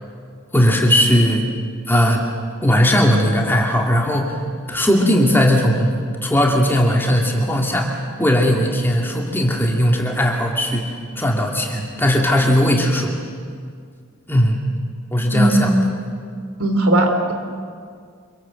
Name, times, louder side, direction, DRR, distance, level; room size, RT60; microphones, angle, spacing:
voice 1, 0.5-1.5 1.9-2.2 2.6-4.4 4.7-13.1 14.3-14.6 15.1-15.7, equal, 10° left, 0 dB, 2.5 m, -18 dB
voice 2, 15.3-15.7 16.6-17.3, right 1 dB, 80° right, 5 dB, 3.8 m, -17 dB
27.0 x 24.0 x 7.8 m, 2.1 s
head